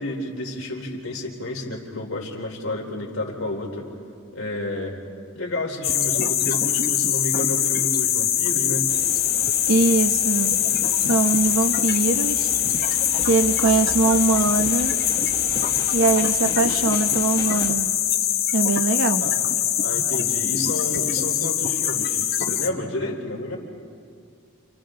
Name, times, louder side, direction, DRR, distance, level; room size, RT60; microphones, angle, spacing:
voice 1, 0.0-3.9 4.3-5.0 5.3-8.9 19.2-19.5 19.8-23.6, left 1 dB, 90° left, -1 dB, 4.0 m, -30 dB
sound 1, 5.8-22.7, left 10 dB, 45° left, 0.9 m, -23 dB
sound 2, 8.9-17.7, left 1 dB, 20° left, 1.4 m, -38 dB
voice 2, 9.7-10.6 11.0-12.5 13.2-15.0 15.9-17.9 18.5-19.2, right 3 dB, 75° right, 8 dB, 1.1 m, -22 dB
30.0 x 29.5 x 3.9 m, 2.4 s
head